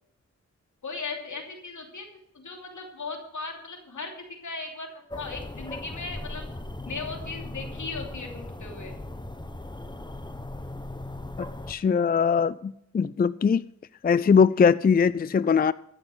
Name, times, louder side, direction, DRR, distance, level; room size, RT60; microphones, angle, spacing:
voice 1, 0.8-2.1 2.4-4.9 5.2-6.4 6.9-8.9, left 4 dB, 80° left, 2.9 m, -37 dB
sound 1, 5.1-11.7, left 1 dB, 15° left, 1.1 m, -38 dB
voice 2, 11.7-13.6 14.0-15.7, left 6 dB, 30° left, 0.4 m, -21 dB
14.5 x 6.6 x 7.8 m
cardioid pair, 50°, 29 cm